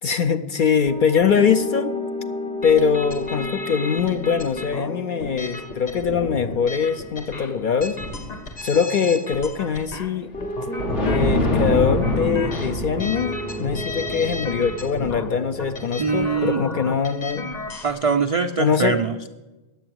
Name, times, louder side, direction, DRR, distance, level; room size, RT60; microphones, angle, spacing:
voice 1, 0.0-1.9 2.6-8.0 8.6-10.3 11.1-17.5 18.6-19.0, left 6 dB, 55° left, 9 dB, 0.6 m, -22 dB
sound 1, 0.9-9.0 10.3-17.0, left 1 dB, 10° left, 0.4 m, -33 dB
sound 2, 2.6-17.9, left 2 dB, 40° left, 1.0 m, -35 dB
sound 3, 7.5-8.7 10.3-10.4 10.6-16.2 16.5-16.6, left 1 dB, 80° left, 2.0 m, -26 dB
voice 2, 16.0-16.7 17.8-19.3, right 5 dB, 65° right, 5 dB, 0.3 m, -23 dB
10.0 x 7.9 x 7.7 m, 1.1 s
omnidirectional pair, 1.2 m